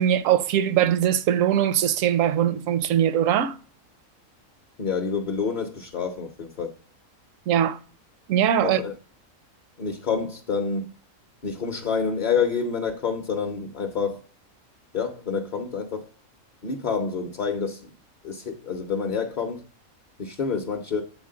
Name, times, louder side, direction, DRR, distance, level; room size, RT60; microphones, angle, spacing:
voice 1, 0.0-3.6 7.5-7.8 8.3-8.8, right 10 dB, 80° right, 0.9 m, -21 dB
voice 2, 4.8-6.7 8.6-8.9 9.8-10.9 11.4-14.2 14.9-16.1 16.6-17.9 18.2-19.7 20.2-21.0, left 5 dB, 45° left, 0.7 m, -28 dB
8.1 x 3.8 x 3.7 m
omnidirectional pair, 1.4 m